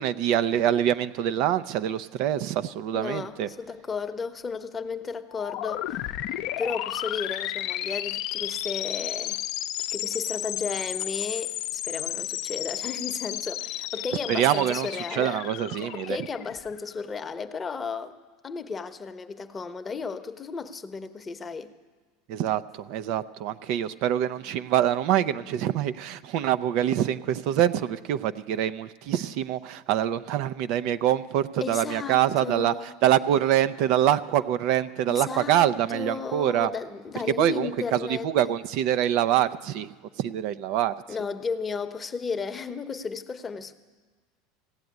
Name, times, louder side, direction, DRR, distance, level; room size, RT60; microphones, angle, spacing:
voice 1, 0.0-3.5 14.3-16.2 22.3-32.7 33.0-36.7 37.3-39.9 40.2-40.9, right 11 dB, 65° right, 13 dB, 0.4 m, -25 dB
voice 2, 2.9-6.1 6.5-9.4 9.9-15.4 15.8-18.1 18.4-21.7 31.6-32.9 35.1-38.5 41.1-43.7, left 5 dB, 25° left, 8 dB, 0.8 m, -34 dB
sound 1, 5.3-17.0, left 13 dB, 65° left, 0.6 m, -33 dB
16.0 x 7.8 x 9.4 m, 1.4 s
supercardioid pair, 105°, 0 cm